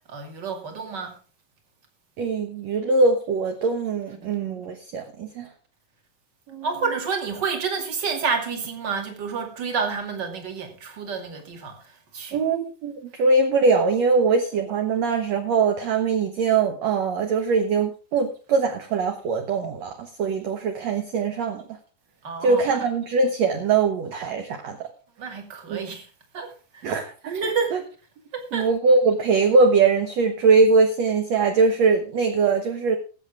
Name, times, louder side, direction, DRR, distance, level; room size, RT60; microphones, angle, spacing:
voice 1, 0.1-1.1 6.6-11.7 12.1-12.4 22.2-22.9 25.2-26.0 26.3-26.8 27.3-27.8 28.3-28.7, right 5 dB, 35° right, 2.5 m, -29 dB
voice 2, 2.2-5.5 6.5-6.7 12.3-21.6 22.4-24.8 25.7-25.8 26.8-27.8 28.5-33.0, right 4 dB, 60° right, 2.1 m, -22 dB
20.5 x 8.2 x 3.6 m
omnidirectional pair, 4.2 m